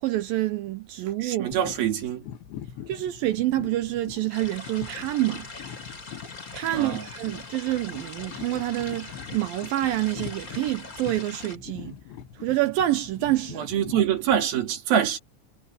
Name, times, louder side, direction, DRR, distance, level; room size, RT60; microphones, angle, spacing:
voice 1, 0.0-1.5 2.9-5.5 6.5-11.9 12.4-13.7, right 15 dB, 80° right, 2.0 m, -27 dB
voice 2, 1.2-2.3 6.7-7.1 13.6-15.2, right 9 dB, 60° right, 3.8 m, -25 dB
sound 1, 1.5-14.4, left 9 dB, 80° left, 4.0 m, -43 dB
sound 2, 4.3-11.6, left 3 dB, 20° left, 3.3 m, -42 dB
omnidirectional pair, 5.1 m